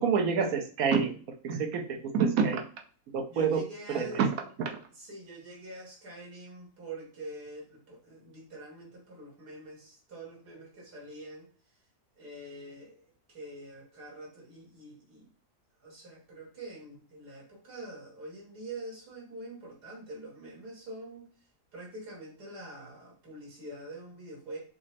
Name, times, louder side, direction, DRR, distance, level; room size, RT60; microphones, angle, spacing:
voice 1, 0.0-1.1 1.4-2.6 3.1-3.6 3.9-4.3, right 6 dB, 70° right, 3 dB, 1.1 m, -27 dB
voice 2, 3.3-4.2 4.9-11.5 12.2-15.3 15.8-21.3 21.7-24.6, right 1 dB, 85° right, -2 dB, 2.2 m, -45 dB
5.0 x 2.0 x 4.2 m, 0.42 s
omnidirectional pair, 1.7 m